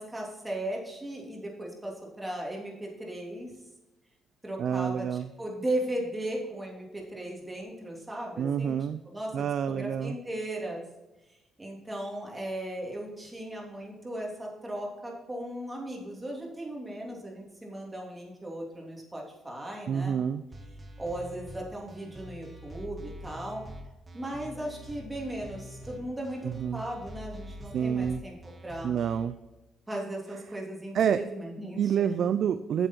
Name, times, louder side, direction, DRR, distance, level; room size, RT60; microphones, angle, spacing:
voice 1, 0.0-3.5 4.4-8.8 9.1-10.8 11.6-20.2 21.0-23.6 24.1-28.4 28.6-28.9 29.9-32.3, right 1 dB, 15° right, -2 dB, 3.0 m, -37 dB
voice 2, 4.6-5.3 8.4-9.0 9.3-10.2 19.9-20.5 26.4-26.9 27.7-28.2 28.8-29.4 30.9-31.2 31.8-32.9, right 8 dB, 65° right, 11 dB, 0.4 m, -28 dB
sound 1, 20.5-29.2, equal, 30° right, 1.8 m, -45 dB
8.1 x 7.2 x 4.5 m, 1.1 s
cardioid pair, 90°, 0 cm